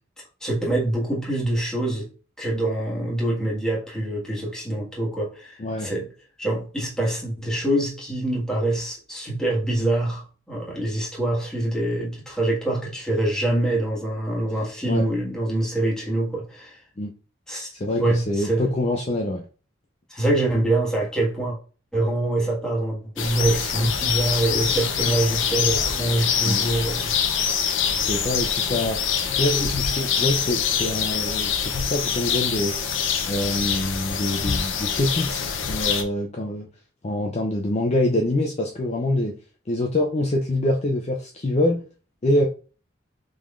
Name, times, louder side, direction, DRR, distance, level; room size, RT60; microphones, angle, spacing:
voice 1, 0.4-2.1 2.4-6.1 6.4-16.8 17.5-17.7 18.0-18.7 20.1-21.6 21.9-27.1, right 1 dB, 5° left, 1.6 m, -25 dB
voice 2, 5.6-5.9 14.9-15.1 17.0-17.1 17.7-19.4 26.4-26.6 28.0-29.0 29.3-32.7 33.3-36.7 37.0-39.3 39.7-41.8 42.2-42.5, left 1 dB, 30° left, 0.5 m, -25 dB
sound 1, 23.2-36.0, left 7 dB, 70° left, 0.7 m, -25 dB
5.1 x 3.7 x 2.5 m
head